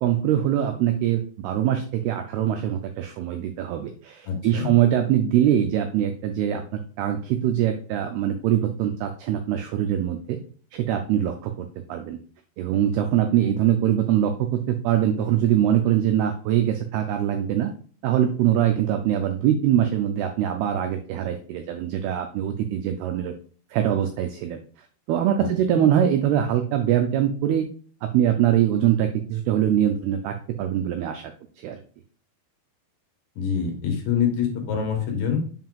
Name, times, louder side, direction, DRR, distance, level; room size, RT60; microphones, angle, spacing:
voice 1, 0.0-10.4 10.7-12.2 12.6-17.7 18.0-23.3 23.7-24.6 25.1-27.7 28.0-31.3 31.6-31.8, right 11 dB, 90° right, 6 dB, 2.2 m, -23 dB
voice 2, 4.3-4.7 25.4-25.8 33.4-35.4, left 7 dB, 70° left, 3 dB, 2.8 m, -26 dB
7.3 x 5.6 x 2.4 m, 0.42 s
omnidirectional pair, 5.2 m